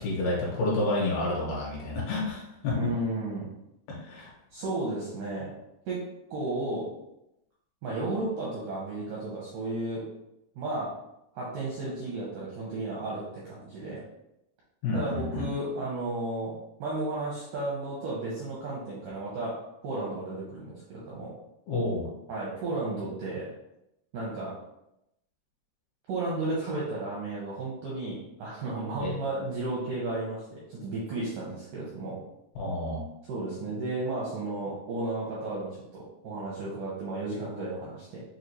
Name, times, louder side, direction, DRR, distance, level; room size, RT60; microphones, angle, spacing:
voice 1, 0.0-2.7 3.9-4.3 14.8-15.5 21.7-22.1 29.0-29.1 32.6-33.0, left 2 dB, 70° left, -4 dB, 2.9 m, -29 dB
voice 2, 2.7-3.5 4.5-5.5 5.9-6.0 6.3-6.9 7.8-10.0 10.6-10.9 11.3-14.0 14.9-16.5 16.8-19.6 19.8-21.3 22.3-23.5 24.1-24.5 26.1-32.2 33.3-38.2, right 2 dB, 80° right, -6 dB, 1.9 m, -33 dB
6.6 x 2.4 x 3.1 m, 0.87 s
omnidirectional pair, 4.8 m